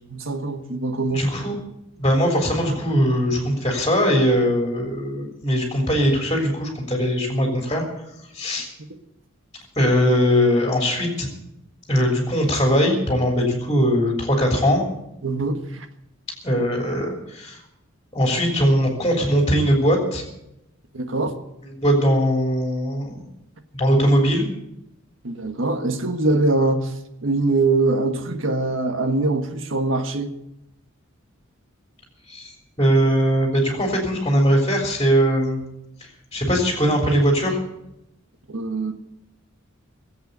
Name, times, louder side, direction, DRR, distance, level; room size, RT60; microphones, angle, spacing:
voice 1, 0.0-1.3 15.2-15.9 20.9-21.4 25.2-26.9 27.2-30.3 38.5-38.9, right 2 dB, 70° right, 1.6 m, -23 dB
voice 2, 1.1-1.6 2.0-7.8 8.3-8.7 9.8-11.3 11.9-14.8 16.4-17.6 18.1-20.2 21.8-23.3 23.8-24.5 32.3-35.6 36.3-37.6, equal, 20° left, 3.3 m, -20 dB
19.5 x 8.1 x 8.1 m
head